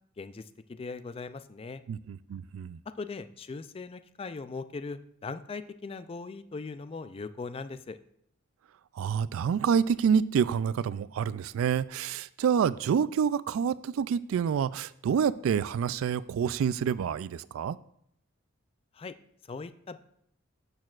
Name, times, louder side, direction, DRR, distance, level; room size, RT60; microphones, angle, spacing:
voice 1, 0.2-1.8 3.0-8.0 18.9-19.1 19.5-20.0, left 4 dB, 30° left, 12 dB, 0.3 m, -39 dB
voice 2, 1.9-2.8 8.9-17.8, right 7 dB, 85° right, 18 dB, 0.3 m, -27 dB
12.0 x 6.5 x 2.4 m, 0.71 s
head